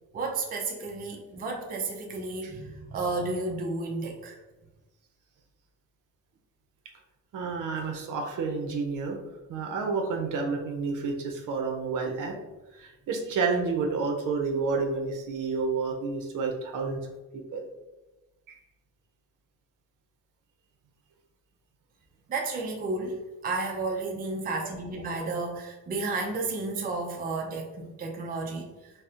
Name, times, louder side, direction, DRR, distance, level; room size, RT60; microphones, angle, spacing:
voice 1, 0.1-4.4 22.3-28.9, right 3 dB, 30° right, 0 dB, 0.4 m, -32 dB
voice 2, 7.3-9.2 9.5-12.3 12.7-17.0 17.3-17.6, right 4 dB, 70° right, 2 dB, 0.6 m, -30 dB
3.9 x 2.1 x 2.4 m, 1.1 s
cardioid pair, 110°, 32 cm